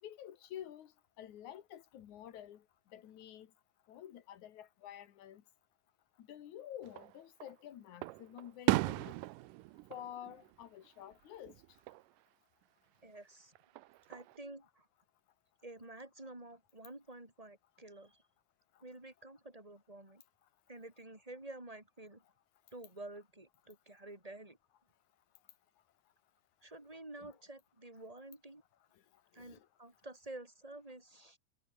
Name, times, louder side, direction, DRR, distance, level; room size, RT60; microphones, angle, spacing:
voice 1, 0.0-3.5 3.9-5.4 6.2-9.2 9.9-11.6 18.7-18.8 27.2-27.4 28.9-29.0 29.3-29.7, left 11 dB, 60° left, 2.7 m, -50 dB
Fireworks, 6.8-7.5 8.0-11.1 11.5-12.0 13.6-14.4, right 19 dB, 75° right, 2.1 m, -37 dB
voice 2, 13.0-13.5 14.1-14.9 15.6-18.2 18.8-20.2 20.7-22.2 22.7-24.6 26.6-28.6 29.3-31.4, right 2 dB, 10° right, 5.4 m, -50 dB
omnidirectional pair, 4.1 m